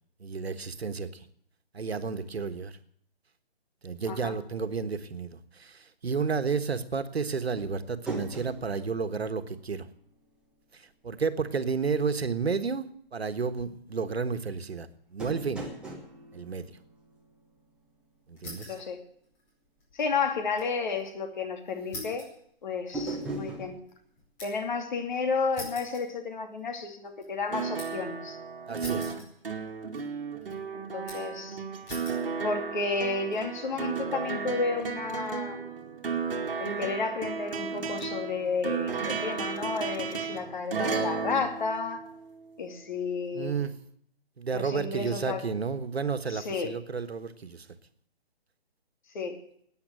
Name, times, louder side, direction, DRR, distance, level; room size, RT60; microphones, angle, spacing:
voice 1, 0.2-1.2 1.7-2.7 3.8-9.9 10.7-15.6 16.3-16.7 18.3-18.7 28.7-29.2 43.3-43.7 44.4-47.7, right 5 dB, 90° right, 10 dB, 1.5 m, -31 dB
sound 1, 7.6-10.2 10.5-10.6 15.2-17.7 22.9-23.8, right 2 dB, 5° right, 1.3 m, -39 dB
sound 2, 18.4-18.9 19.2-20.8 21.1-21.2 21.9-24.8 25.5-26.7 27.0-28.1 28.8-29.7 29.9-30.5 31.1-31.4 31.9-32.3 32.9-33.4, left 1 dB, 20° left, 5.0 m, -44 dB
voice 2, 18.7-19.0 19.9-22.3 22.6-23.8 24.4-28.4 30.7-31.6 32.4-35.9 36.6-42.1 42.6-43.6 44.5-45.4 46.3-46.7 49.1-49.4, left 4 dB, 50° left, 5 dB, 2.6 m, -32 dB
sound 3, 27.5-42.4 43.7-43.8, right 5 dB, 65° right, 2.3 m, -34 dB
13.0 x 9.5 x 9.2 m, 0.67 s
hypercardioid pair, 160°, 30 cm